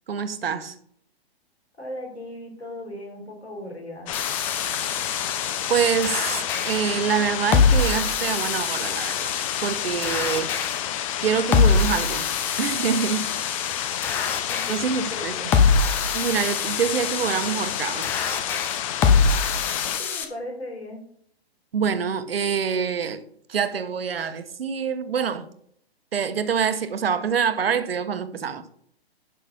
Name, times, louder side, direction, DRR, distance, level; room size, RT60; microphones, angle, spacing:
voice 1, 0.1-0.7 5.7-9.3 9.6-10.5 11.2-12.3 12.6-13.3 14.7-15.4 16.1-18.1 21.7-23.2 23.5-25.5 26.1-28.6, right 7 dB, 65° right, 1.3 m, -25 dB
voice 2, 1.8-4.1 14.5-15.6 19.8-21.0, left 1 dB, 85° left, 4.4 m, -37 dB
sound 1, 4.1-20.0, left 11 dB, 30° left, 0.8 m, -30 dB
sound 2, 4.1-20.2, left 5 dB, 5° left, 0.4 m, -25 dB
11.0 x 6.1 x 5.7 m
figure-of-eight pair, 125°, 32 cm